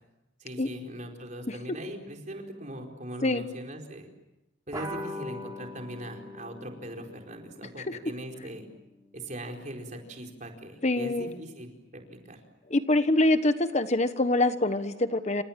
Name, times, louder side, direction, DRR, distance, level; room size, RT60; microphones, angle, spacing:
voice 1, 0.4-4.1 4.7-8.7 9.1-12.4, right 1 dB, 40° right, 2 dB, 4.6 m, -40 dB
sound 1, 4.7-9.6, left 1 dB, 20° right, 5.5 m, -42 dB
voice 2, 10.8-11.3 12.7-15.4, left 2 dB, 40° left, 10 dB, 1.1 m, -25 dB
29.0 x 27.0 x 7.5 m, 0.95 s
head